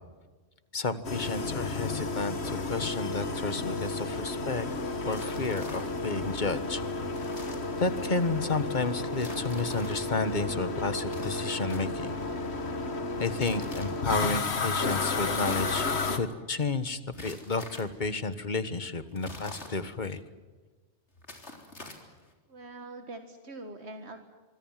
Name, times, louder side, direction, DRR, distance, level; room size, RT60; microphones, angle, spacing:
voice 1, 0.7-4.7 5.0-6.8 7.8-12.1 13.2-20.2, left 3 dB, 45° left, 12 dB, 1.5 m, -31 dB
sound 1, 1.0-16.2, left 3 dB, 70° left, 1.9 m, -32 dB
sound 2, 5.1-6.2 7.1-8.0 9.1-10.1 11.1-12.3 13.1-14.2 15.1-16.0 17.1-18.0 19.1-20.2 21.1-22.3, left 2 dB, 90° left, 4.0 m, -46 dB
voice 2, 22.5-24.2, right 2 dB, 75° right, 6 dB, 2.0 m, -43 dB
25.5 x 25.0 x 7.5 m, 1.3 s
omnidirectional pair, 1.1 m